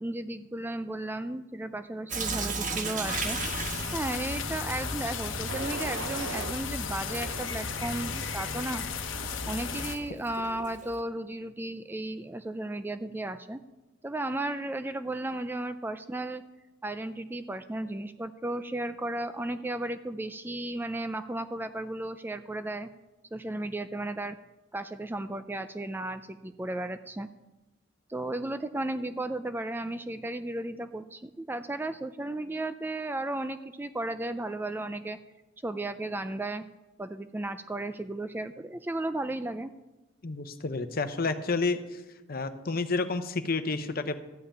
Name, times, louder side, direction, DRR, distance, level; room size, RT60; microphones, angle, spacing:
voice 1, 0.0-3.4 3.9-8.9 9.5-13.6 14.0-16.4 16.8-22.9 23.3-24.4 24.7-27.3 28.1-35.2 35.6-36.6 37.0-39.7, right 1 dB, 10° right, 11 dB, 0.3 m, -34 dB
Sink (filling or washing) / Drip, 2.1-11.0, right 4 dB, 40° right, 1.2 m, -38 dB
sound 1, 3.0-10.0, left 5 dB, 75° left, 1.0 m, -34 dB
sound 2, 4.5-4.9 5.5-6.5 7.1-8.1 8.7-9.1, right 4 dB, 85° right, 0.8 m, -40 dB
voice 2, 40.2-42.0 42.3-44.2, left 3 dB, 50° left, 10 dB, 0.8 m, -30 dB
13.0 x 5.7 x 8.6 m, 1.1 s
head